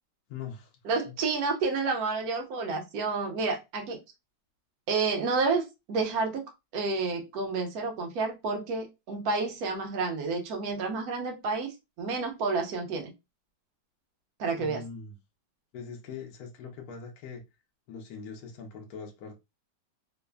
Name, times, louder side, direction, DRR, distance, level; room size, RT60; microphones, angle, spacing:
voice 1, 0.3-0.7 1.1-1.2 14.6-15.2 15.7-17.4 17.9-19.4, left 5 dB, 70° left, 1.0 m, -42 dB
voice 2, 0.8-4.0 4.9-6.4 6.7-11.7 12.0-13.1 14.4-14.8, right 4 dB, 65° right, 1.1 m, -30 dB
3.2 x 2.0 x 2.2 m
omnidirectional pair, 1.9 m